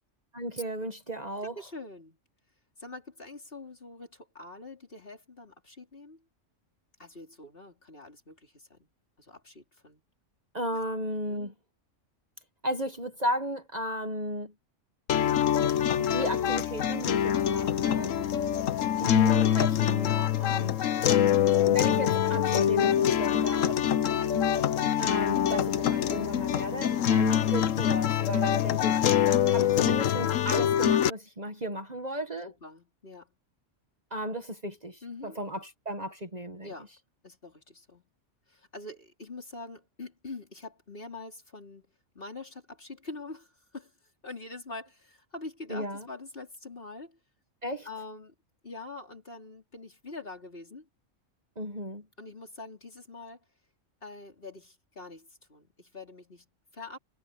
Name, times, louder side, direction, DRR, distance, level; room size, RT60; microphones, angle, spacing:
voice 1, 0.3-1.6 10.5-11.5 12.6-14.5 16.1-18.1 19.0-20.8 21.1-21.3 21.6-23.8 25.0-32.5 34.1-36.7 45.7-46.1 47.6-47.9 51.6-52.0, equal, 35° right, 1.7 m, -35 dB
voice 2, 1.5-2.2 2.8-6.2 7.0-8.8 9.2-10.0 10.7-10.8 11.3-11.5 18.0-18.3 24.1-24.4 26.9-27.3 32.6-33.3 35.0-35.4 36.6-36.9 37.2-38.1 38.5-41.9 42.1-43.9 44.2-47.2 47.8-48.3 48.6-50.9 52.2-53.4 54.0-57.0, left 3 dB, 45° left, 4.5 m, -44 dB
sound 1, 15.1-31.1, left 10 dB, 90° left, 1.2 m, -25 dB
omnidirectional pair, 1.3 m